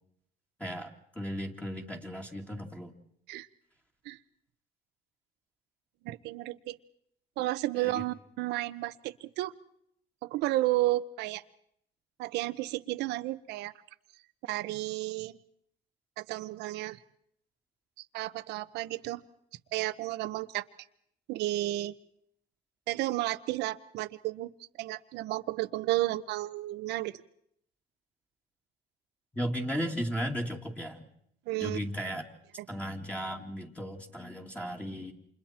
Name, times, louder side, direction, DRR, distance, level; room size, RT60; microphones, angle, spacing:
voice 1, 0.6-2.9 7.7-8.0 29.3-31.0 31.6-32.2 32.7-35.1, equal, 10° left, 1 dB, 2.6 m, -35 dB
voice 2, 6.0-6.8 7.4-9.5 10.2-11.4 12.2-13.7 14.5-15.4 16.2-17.0 18.1-19.2 19.7-20.6 21.3-21.9 22.9-24.5 24.8-27.2 31.5-31.8, right 17 dB, 85° right, 13 dB, 1.0 m, -32 dB
29.0 x 27.5 x 4.5 m, 0.70 s
cardioid pair, 110°, 17 cm